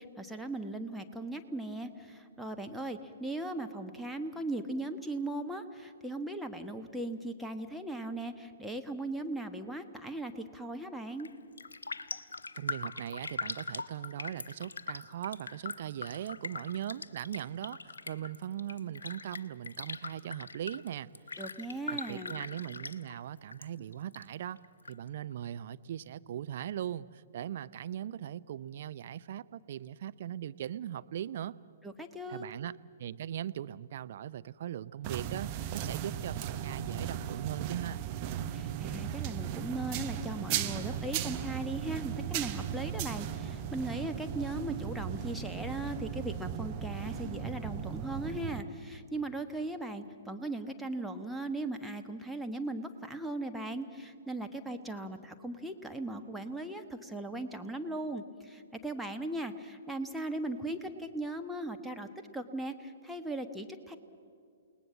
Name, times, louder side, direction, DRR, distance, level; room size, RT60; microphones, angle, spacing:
voice 1, 0.0-11.3 21.4-22.4 31.8-32.5 38.5-62.1 62.3-64.0, right 2 dB, ahead, 3 dB, 1.3 m, -38 dB
Raindrop, 11.1-11.3 11.6-23.7 23.9-24.9 25.3-25.4, left 3 dB, 70° left, 0.9 m, -41 dB
voice 2, 12.5-21.1 21.9-24.6 24.9-31.6 32.3-38.0, right 10 dB, 50° right, 14 dB, 0.6 m, -39 dB
sound 1, 35.0-48.6, right 9 dB, 35° right, 1.1 m, -37 dB
29.0 x 19.5 x 7.5 m, 2.3 s
figure-of-eight pair, 120°, 0 cm